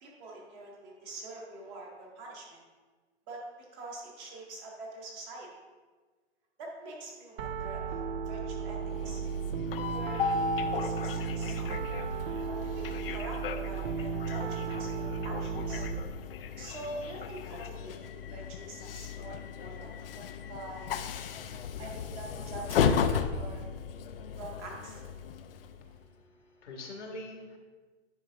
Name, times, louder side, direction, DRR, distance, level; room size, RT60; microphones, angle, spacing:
voice 1, 0.0-2.6 3.3-5.5 6.6-9.2 9.9-11.8 12.4-15.9 16.6-20.9 21.8-23.6 24.3-25.0, right 2 dB, 15° right, -2 dB, 0.8 m, -45 dB
Piano, 7.4-16.0, right 6 dB, 60° right, 0.6 m, -35 dB
Train, 8.7-26.0, left 6 dB, 55° left, 0.5 m, -35 dB
voice 2, 25.8-27.6, left 2 dB, 85° left, 1 dB, 1.9 m, -45 dB
9.9 x 5.1 x 3.6 m, 1.4 s
hypercardioid pair, 165°, 35 cm